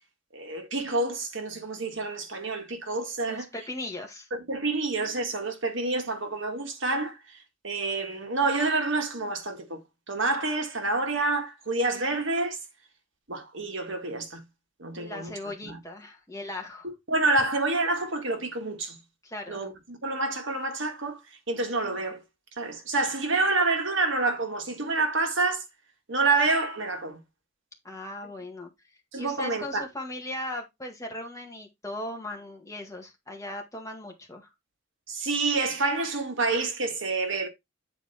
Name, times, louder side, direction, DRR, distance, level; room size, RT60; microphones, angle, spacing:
voice 1, 0.3-3.5 4.3-7.4 7.6-9.8 10.1-12.6 13.3-14.4 14.8-15.3 15.6-15.8 16.8-19.0 19.5-21.2 21.5-22.2 22.6-25.6 26.1-27.2 29.1-29.9 35.1-37.5, right 3 dB, 65° right, 1.9 m, -28 dB
voice 2, 3.3-4.3 15.0-16.9 19.2-19.6 27.8-28.7 29.2-34.5, left 1 dB, 15° left, 1.9 m, -38 dB
9.1 x 4.5 x 4.3 m
head